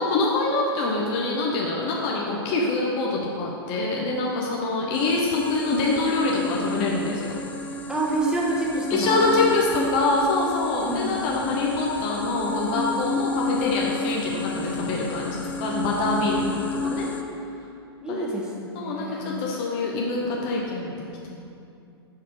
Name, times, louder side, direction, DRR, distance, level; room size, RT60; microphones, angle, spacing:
voice 1, 0.0-7.4 8.9-17.1 18.1-18.3 18.7-21.4, left 3 dB, 35° left, -3 dB, 0.8 m, -25 dB
sound 1, 4.9-17.2, left 2 dB, 10° left, 0.4 m, -31 dB
voice 2, 7.9-9.4 10.8-11.2 16.8-17.4 18.0-19.3, right 2 dB, 5° right, -3 dB, 1.0 m, -29 dB
6.6 x 4.6 x 4.8 m, 2.6 s
figure-of-eight pair, 105°, 13 cm